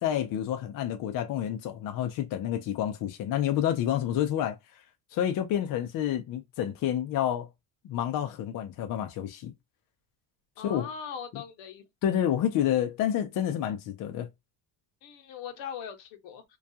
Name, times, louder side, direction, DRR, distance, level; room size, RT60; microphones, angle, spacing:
voice 1, 0.0-4.6 5.1-7.5 7.8-9.5 10.6-10.9 11.3-11.4 12.0-14.3, left 10 dB, 50° left, 0.4 m, -29 dB
voice 2, 10.6-11.8 15.0-16.4, left 7 dB, 75° left, 0.8 m, -40 dB
2.3 x 2.3 x 2.6 m
cardioid pair, 155°, 45 cm